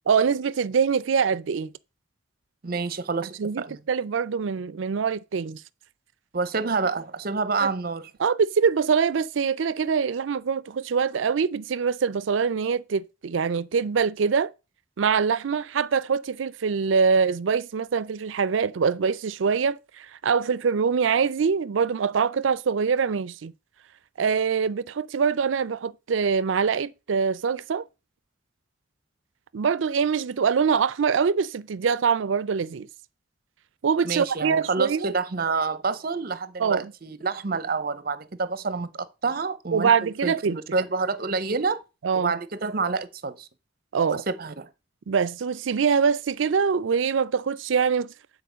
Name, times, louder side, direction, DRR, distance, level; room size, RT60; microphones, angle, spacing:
voice 1, 0.1-1.7 3.4-5.6 7.6-7.7 8.2-14.5 15.0-23.5 24.2-27.8 29.5-32.9 33.8-35.1 36.6-36.9 39.7-40.6 42.0-42.3 43.9-44.2 45.1-48.1, right 6 dB, 85° right, 0.5 m, -24 dB
voice 2, 2.6-3.8 6.3-8.1 34.0-41.8 42.1-43.5 44.1-44.7, right 4 dB, 50° right, 0.7 m, -28 dB
9.3 x 4.3 x 5.0 m
head